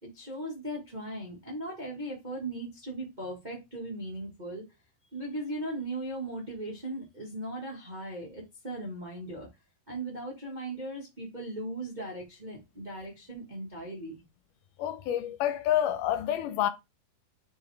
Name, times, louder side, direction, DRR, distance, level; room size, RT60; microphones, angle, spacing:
voice 1, 0.0-4.6 5.1-9.5 9.9-14.2, right 1 dB, 65° right, 0.4 m, -38 dB
voice 2, 14.8-16.7, left 11 dB, 80° left, 2.1 m, -28 dB
9.3 x 3.4 x 3.4 m
omnidirectional pair, 4.3 m